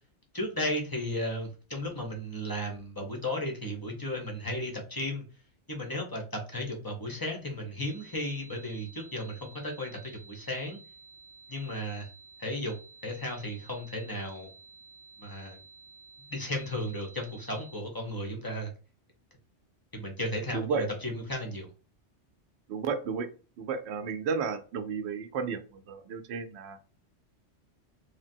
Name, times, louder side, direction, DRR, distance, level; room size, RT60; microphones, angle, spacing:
voice 1, 0.3-5.2 5.7-10.8 11.5-12.1 12.4-12.7 13.0-14.5 15.2-15.6 16.3-18.7 19.9-21.7, left 1 dB, 25° left, 1 dB, 0.5 m, -34 dB
sound 1, 7.8-17.8, right 4 dB, 65° left, 0.8 m, -53 dB
voice 2, 20.5-20.9 22.7-23.3 23.6-26.8, right 5 dB, 70° right, 8 dB, 0.8 m, -32 dB
3.3 x 2.1 x 2.6 m, 0.35 s
omnidirectional pair, 1.2 m